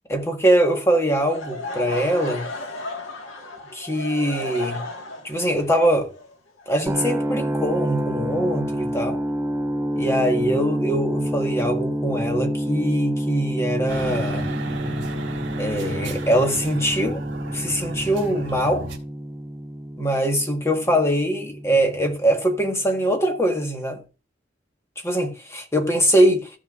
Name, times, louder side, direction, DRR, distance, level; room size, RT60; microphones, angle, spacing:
voice 1, 0.1-2.4 3.7-4.8 5.2-6.1 6.7-9.2 9.9-14.4 15.6-17.2 17.5-18.8 20.0-24.0 25.0-26.5, right 1 dB, 15° left, 1.5 m, -22 dB
Laughter / Crowd, 1.2-7.1, left 2 dB, 85° left, 1.8 m, -34 dB
sound 1, 6.9-22.8, equal, 15° right, 0.4 m, -28 dB
sound 2, 13.9-19.0, right 1 dB, 70° right, 1.8 m, -34 dB
14.0 x 6.3 x 2.5 m
head